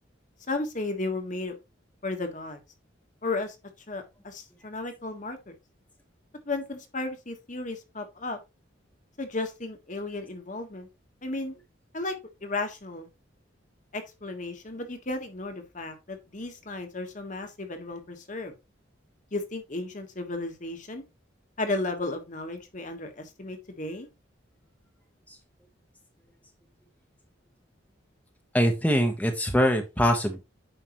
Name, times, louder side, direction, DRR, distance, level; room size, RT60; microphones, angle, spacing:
voice 1, 0.5-1.6 2.0-2.6 3.2-3.6 3.9-5.5 6.4-8.4 9.2-10.9 11.2-11.5 11.9-12.1 12.4-13.1 13.9-18.5 19.3-21.0 21.6-24.1, left 2 dB, 40° left, 1.5 m, -34 dB
voice 2, 28.5-30.4, equal, 10° left, 1.1 m, -23 dB
9.1 x 5.8 x 3.1 m
head